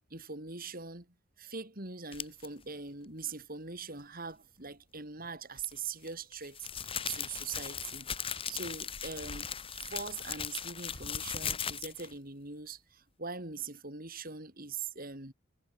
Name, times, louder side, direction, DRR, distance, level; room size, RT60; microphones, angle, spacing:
voice 1, 0.1-1.1 1.4-9.5 9.7-15.3, right 5 dB, 45° right, 5.3 m, -42 dB
sound 1, 2.1-2.5 5.6-12.1, left 7 dB, 25° left, 1.6 m, -38 dB
head